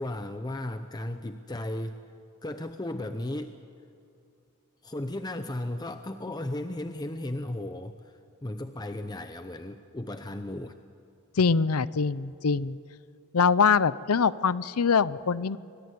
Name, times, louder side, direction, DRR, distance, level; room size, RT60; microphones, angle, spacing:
voice 1, 0.0-2.0 2.4-3.5 4.8-10.8, left 1 dB, 20° left, 8 dB, 0.7 m, -35 dB
voice 2, 11.4-12.8 13.3-15.6, left 5 dB, 80° left, 18 dB, 0.6 m, -23 dB
25.0 x 20.5 x 9.6 m, 2.5 s
head